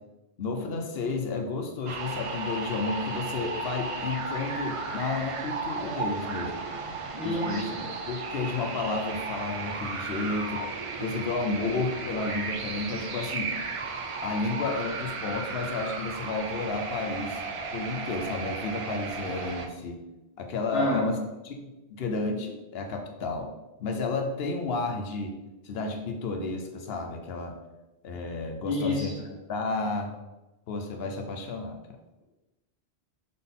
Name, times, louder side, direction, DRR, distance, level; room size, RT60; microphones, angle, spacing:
voice 1, 0.4-6.6 7.2-10.6 11.0-13.5 14.2-17.4 17.7-20.0 20.4-21.2 21.4-21.7 22.0-23.5 23.8-25.4 25.6-27.6 28.0-30.1 30.7-31.8, left 3 dB, 65° left, 4 dB, 0.9 m, -32 dB
sound 1, 1.9-19.7, right 4 dB, 55° right, 0.3 m, -34 dB
voice 2, 7.2-7.8 20.7-21.1 28.7-29.1, left 2 dB, 45° left, -6 dB, 1.7 m, -29 dB
3.8 x 3.8 x 3.6 m, 1.0 s
omnidirectional pair, 1.1 m